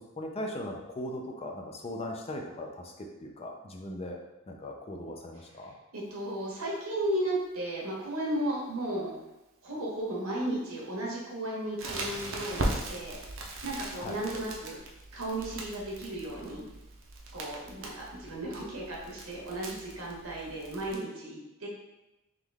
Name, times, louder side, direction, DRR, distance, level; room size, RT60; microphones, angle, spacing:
voice 1, 0.2-4.2 4.5-5.7 13.9-14.2, left 1 dB, 30° left, 1 dB, 0.5 m, -39 dB
voice 2, 5.9-9.1 9.6-13.2 13.6-14.8 15.1-16.6 17.3-21.7, right 1 dB, 90° right, -4 dB, 1.2 m, -34 dB
Crackle, 11.8-20.9, right 2 dB, 65° right, 0.7 m, -39 dB
3.7 x 3.0 x 3.5 m, 0.97 s
head